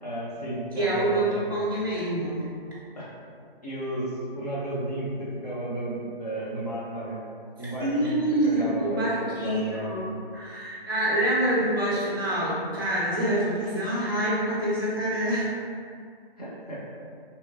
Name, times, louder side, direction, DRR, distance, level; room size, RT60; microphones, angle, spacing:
voice 1, 0.0-1.3 3.0-3.1 3.6-7.2 7.6-10.1 16.4-16.8, right 1 dB, 40° left, -7 dB, 0.8 m, -33 dB
voice 2, 0.8-2.5 7.8-15.5, right 1 dB, 20° right, -9 dB, 0.4 m, -26 dB
2.9 x 2.0 x 2.6 m, 2.2 s
figure-of-eight pair, 150°, 30 cm